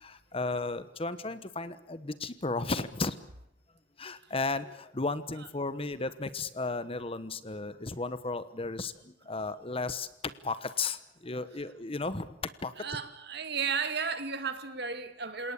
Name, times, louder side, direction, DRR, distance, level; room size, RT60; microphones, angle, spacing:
voice 1, 0.0-3.2 4.0-12.3 12.6-12.7, left 3 dB, 30° left, 13 dB, 1.1 m, -34 dB
voice 2, 12.8-15.5, right 5 dB, 60° right, 8 dB, 2.2 m, -34 dB
28.5 x 18.5 x 8.5 m, 0.84 s
head